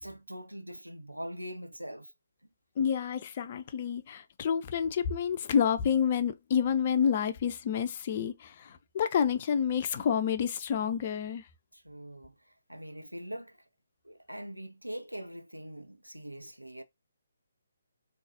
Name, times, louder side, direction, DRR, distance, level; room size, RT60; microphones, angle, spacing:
voice 1, 0.0-2.1 11.7-12.3 12.7-13.6 14.0-16.8, equal, 90° right, 0.7 m, -42 dB
voice 2, 2.8-11.4, left 7 dB, 35° left, 0.5 m, -29 dB
3.9 x 2.7 x 2.6 m
figure-of-eight pair, 140°, 0 cm